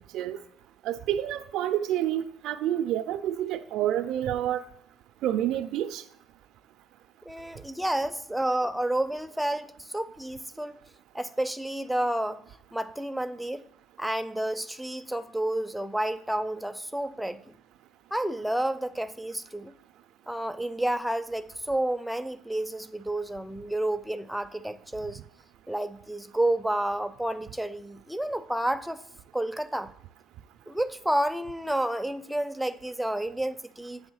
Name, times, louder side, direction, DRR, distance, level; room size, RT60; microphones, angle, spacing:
voice 1, 0.8-4.6 5.2-6.0, right 11 dB, 75° right, 7 dB, 0.3 m, -28 dB
voice 2, 7.2-10.8 11.1-12.4 12.7-13.6 14.0-17.4 18.1-19.7 20.3-25.2 25.7-29.0 29.3-29.9 30.7-34.0, right 1 dB, ahead, 10 dB, 0.4 m, -30 dB
8.0 x 3.4 x 6.2 m, 0.77 s
cardioid pair, 110°, 0 cm